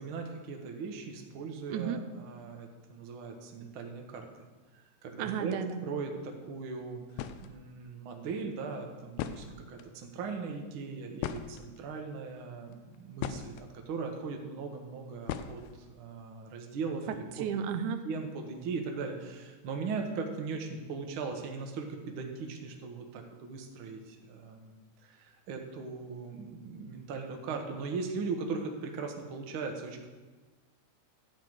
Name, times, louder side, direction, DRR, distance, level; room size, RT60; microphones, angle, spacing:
voice 1, 0.0-4.3 4.7-5.6 5.8-15.6 15.9-17.5 18.0-30.1, right 4 dB, 60° right, 3 dB, 1.5 m, -39 dB
voice 2, 1.7-2.0 5.2-5.9 17.1-18.0, right 7 dB, 85° right, 8 dB, 2.1 m, -33 dB
sound 1, 6.8-6.9 7.1-7.5 8.7-8.8 9.1-9.9 11.2-12.0 12.7-13.7 15.3-15.9, left 9 dB, 80° left, 1.7 m, -38 dB
11.0 x 4.5 x 7.8 m, 1.3 s
omnidirectional pair, 3.3 m